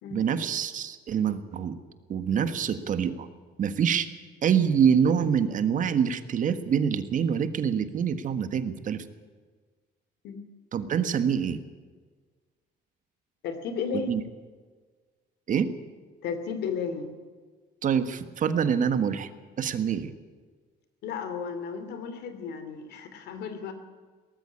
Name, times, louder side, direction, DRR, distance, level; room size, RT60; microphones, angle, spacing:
voice 1, 0.1-1.8 2.1-3.3 3.6-4.1 4.4-9.0 10.7-11.6 14.1-14.2 15.5-15.7 17.8-19.3 19.6-20.1, right 7 dB, 50° right, 10 dB, 1.5 m, -25 dB
voice 2, 13.4-14.2 16.2-17.1 21.0-23.7, left 6 dB, 80° left, 10 dB, 2.8 m, -33 dB
18.5 x 14.0 x 9.9 m, 1.5 s
cardioid pair, 110°, 17 cm